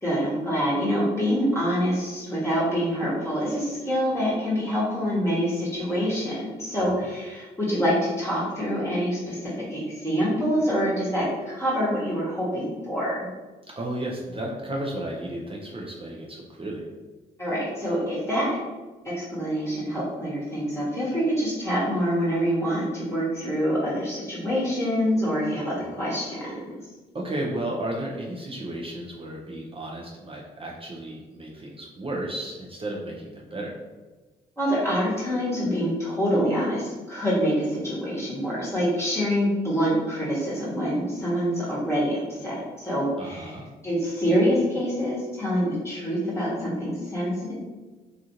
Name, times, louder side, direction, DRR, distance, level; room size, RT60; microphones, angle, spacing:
voice 1, 0.0-13.3 17.4-18.6 19.0-26.5 34.6-43.5 43.8-47.5, equal, 15° left, -8 dB, 1.1 m, -26 dB
voice 2, 13.8-16.8 25.8-26.0 27.1-33.7 43.2-43.7, right 1 dB, 25° right, -2 dB, 0.6 m, -33 dB
2.5 x 2.4 x 2.9 m, 1.2 s
hypercardioid pair, 45°, 21 cm